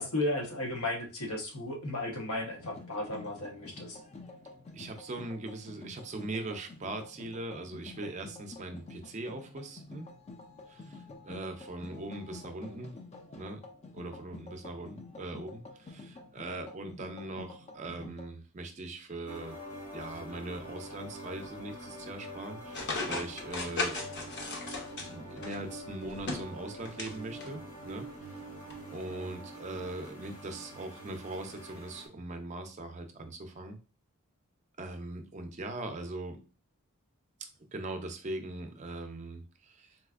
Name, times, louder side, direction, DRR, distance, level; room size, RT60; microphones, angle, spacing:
voice 1, 0.0-4.0, left 1 dB, 85° left, 0 dB, 1.0 m, -34 dB
sound 1, 2.5-18.3, left 3 dB, 30° left, 0.4 m, -49 dB
voice 2, 4.7-10.1 10.7-12.9 13.4-13.6 13.9-19.6 19.9-24.7 25.1-28.4 28.9-33.8 34.8-36.4 37.7-40.0, right 2 dB, 35° right, 6 dB, 0.4 m, -41 dB
sound 2, 19.3-32.1, equal, 70° left, 1.2 m, -45 dB
sound 3, 22.7-25.6 26.0-27.1 27.4-27.5 28.7-28.8, left 3 dB, 50° left, 0.7 m, -36 dB
4.0 x 2.5 x 2.4 m, 0.34 s
head